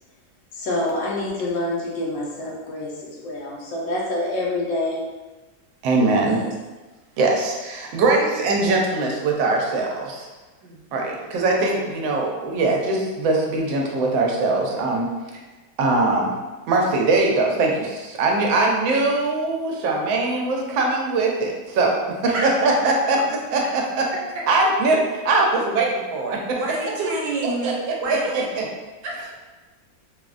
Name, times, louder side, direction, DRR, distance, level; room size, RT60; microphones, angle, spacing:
voice 1, 0.5-5.0 6.2-6.5, left 1 dB, 90° left, -3 dB, 1.4 m, -27 dB
voice 2, 5.8-6.4 7.2-10.3 10.9-15.1 15.8-16.3 16.7-23.2 23.5-24.1 24.5-26.6 27.4-27.7 28.1-28.6, right 3 dB, 90° right, 0 dB, 1.3 m, -21 dB
voice 3, 10.6-11.0 22.3-22.8 26.4-27.7 28.0-28.2 29.0-29.3, right 2 dB, 70° right, -3 dB, 1.2 m, -28 dB
3.6 x 2.1 x 2.4 m, 1.2 s
omnidirectional pair, 2.0 m